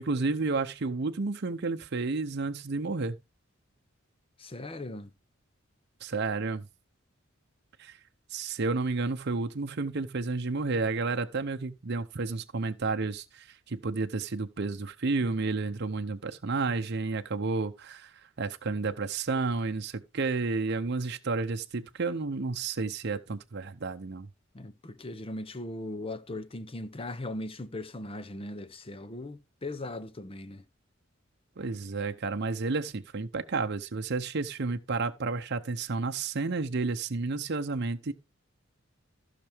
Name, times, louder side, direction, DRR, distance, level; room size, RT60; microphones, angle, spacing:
voice 1, 0.0-3.1 6.0-6.6 7.8-8.0 8.3-24.3 31.6-38.1, right 3 dB, 55° right, 0.7 m, -31 dB
voice 2, 4.4-5.1 24.5-30.6, left 2 dB, 25° left, 0.7 m, -39 dB
15.0 x 5.9 x 3.5 m
head